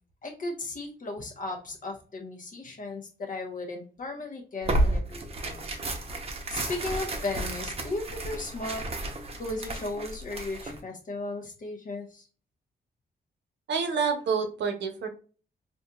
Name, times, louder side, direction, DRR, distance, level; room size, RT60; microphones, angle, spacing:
voice 1, 0.2-3.0 3.3-5.8 6.5-8.9 9.4-12.3, left 2 dB, 50° left, 2 dB, 1.0 m, -36 dB
Tearing, 4.6-10.8, right 1 dB, 35° right, 0.7 m, -32 dB
voice 2, 13.7-15.1, right 5 dB, 85° right, 5 dB, 0.8 m, -28 dB
4.2 x 2.7 x 2.3 m, 0.38 s
cardioid pair, 120°, 18 cm